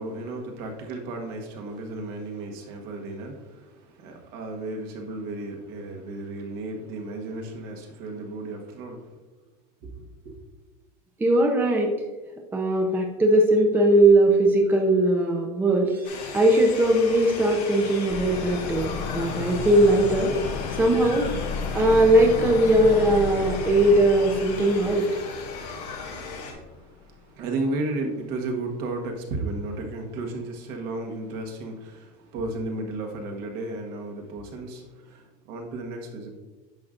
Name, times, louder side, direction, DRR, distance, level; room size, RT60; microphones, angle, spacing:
voice 1, 0.0-9.1 9.8-10.4 25.5-36.3, right 2 dB, 55° right, 2 dB, 1.5 m, -34 dB
voice 2, 11.2-11.9 12.5-18.9 19.1-20.3 20.7-21.3 21.7-25.1, right 1 dB, 10° right, 1 dB, 0.7 m, -20 dB
sound 1, 16.0-26.5, left 4 dB, 90° left, 2.1 m, -37 dB
sound 2, 18.1-26.8 27.1-27.2, left 5 dB, 45° left, 0.5 m, -33 dB
10.5 x 6.0 x 2.6 m, 1.2 s
supercardioid pair, 150°, 20 cm